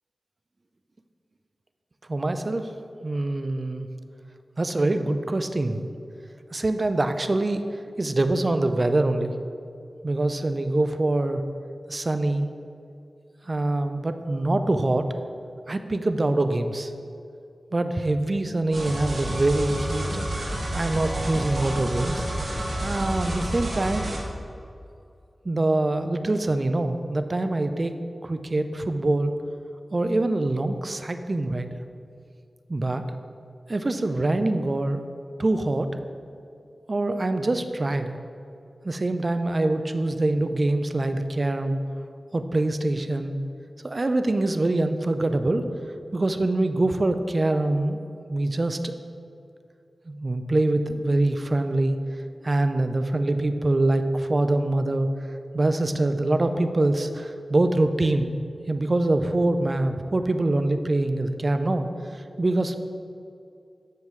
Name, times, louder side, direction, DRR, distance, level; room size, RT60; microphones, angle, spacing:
voice 1, 2.1-2.7 3.0-3.9 4.6-5.9 6.5-7.6 8.0-9.3 10.0-11.4 11.9-12.5 13.5-15.1 15.7-16.9 17.7-20.3 20.7-22.2 22.8-24.1 25.4-29.3 29.9-31.7 32.7-33.0 33.7-35.0 35.4-35.9 36.9-38.2 38.8-41.8 42.3-43.4 43.8-45.6 46.1-48.0 48.3-48.9 50.1-52.0 52.4-55.1 55.5-58.3 58.7-62.8, right 2 dB, 45° right, 8 dB, 0.5 m, -24 dB
sound 1, 18.7-24.2, right 1 dB, 85° right, 1.9 m, -29 dB
12.0 x 5.2 x 3.2 m, 2.5 s
cardioid pair, 45°, 0 cm